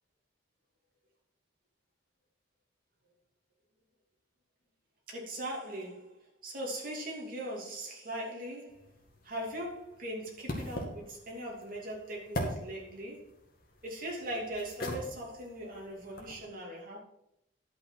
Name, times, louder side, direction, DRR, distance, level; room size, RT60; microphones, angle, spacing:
voice 1, 5.1-8.9 9.2-13.3 13.8-17.0, right 1 dB, 45° right, -2 dB, 2.8 m, -40 dB
sound 1, 8.7-16.4, equal, 50° left, 1.9 m, -42 dB
10.5 x 6.0 x 5.7 m, 0.79 s
head